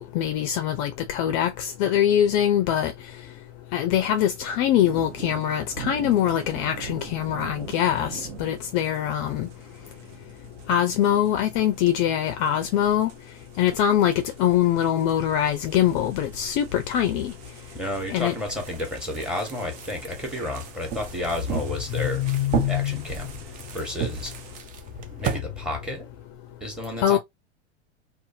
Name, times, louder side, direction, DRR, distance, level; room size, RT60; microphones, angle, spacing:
voice 1, 0.0-2.9 3.7-9.5 10.7-13.1 13.6-17.3 18.1-18.3 22.0-23.0 27.0-27.2, left 10 dB, 45° left, 0.5 m, -23 dB
sound 1, 4.8-24.6, right 8 dB, 50° right, 0.8 m, -45 dB
voice 2, 17.7-23.3 23.7-24.3 25.1-26.1 26.6-27.2, left 1 dB, 5° right, 1.1 m, -31 dB
sound 2, 18.5-25.4, right 8 dB, 25° right, 0.4 m, -34 dB
2.5 x 2.4 x 2.6 m
hypercardioid pair, 110°, 35 cm